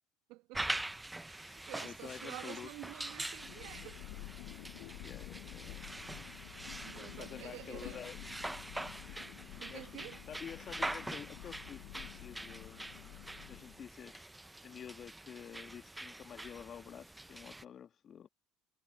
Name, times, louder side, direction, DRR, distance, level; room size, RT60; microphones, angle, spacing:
voice 1, 0.3-0.7 1.1-4.0 6.8-8.0 9.6-10.2, right 21 dB, 65° right, 2.1 m, -49 dB
sound 1, 0.5-17.6, right 2 dB, 10° right, 0.8 m, -44 dB
voice 2, 1.1-2.7 5.0-5.9 7.0-8.2 9.7-9.9 10.3-13.2 13.5-14.3 14.6-18.3, left 8 dB, 40° left, 1.6 m, -49 dB
Thunder, 3.1-14.1, left 23 dB, 65° left, 0.9 m, -50 dB
hypercardioid pair, 70°, 0 cm